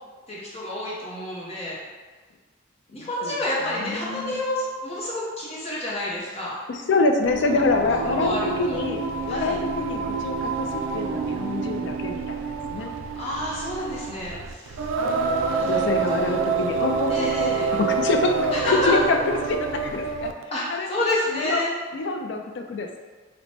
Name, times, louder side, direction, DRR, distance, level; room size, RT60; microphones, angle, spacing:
voice 1, 0.3-1.8 2.9-6.6 8.1-8.8 9.3-9.6 13.2-14.9 15.5-16.3 17.1-17.7 18.5-18.9 20.5-21.7, left 1 dB, 30° left, -6 dB, 0.7 m, -29 dB
voice 2, 2.9-3.3 3.7-4.4 6.7-12.4 12.7-12.9 15.7-19.2 19.4-20.3 20.7-21.0 21.3-21.6 21.9-23.0, left 3 dB, 65° left, 4 dB, 0.3 m, -26 dB
Singing, 7.2-20.4, right 4 dB, 80° right, 0.3 m, -27 dB
3.0 x 2.1 x 4.1 m, 1.4 s
head